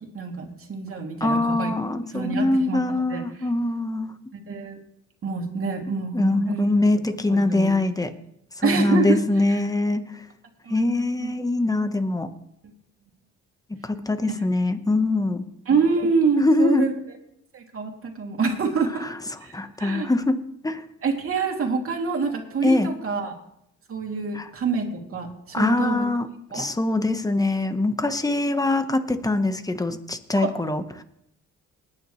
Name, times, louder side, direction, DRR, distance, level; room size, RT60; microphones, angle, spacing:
voice 1, 0.1-1.7 2.1-2.8 3.1-3.5 4.3-4.8 5.2-6.7 7.3-7.7 8.6-9.2 10.6-11.3 15.7-16.9 17.5-19.1 19.4-19.5 19.8-20.1 21.0-23.3 23.9-26.1 26.5-26.7 30.4-30.5, right 5 dB, 45° right, 2 dB, 2.8 m, -26 dB
voice 2, 1.2-4.1 6.1-8.1 8.6-10.0 10.7-12.3 13.8-15.4 16.4-16.9 19.0-19.1 19.5-20.4 20.6-20.8 22.6-22.9 24.3-24.5 25.5-26.3 26.5-31.0, left 2 dB, 10° left, 9 dB, 1.1 m, -23 dB
20.0 x 9.8 x 3.2 m, 0.76 s
cardioid pair, 90°, 30 cm